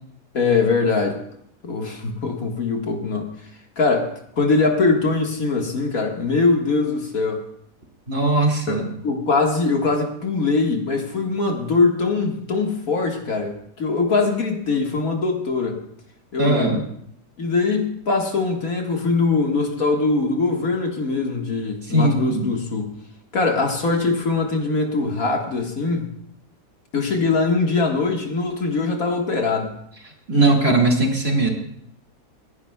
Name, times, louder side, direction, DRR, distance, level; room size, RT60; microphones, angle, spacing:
voice 1, 0.3-1.2 1.6-3.3 3.8-7.4 8.7-15.8 16.3-16.8 17.4-22.9 23.3-26.1 26.9-29.7, left 3 dB, 60° left, 1 dB, 2.0 m, -22 dB
voice 2, 8.1-8.9 16.4-16.8 21.8-22.4 30.3-31.5, right 2 dB, 40° right, 0 dB, 2.4 m, -19 dB
27.5 x 11.0 x 2.3 m, 0.70 s
omnidirectional pair, 1.7 m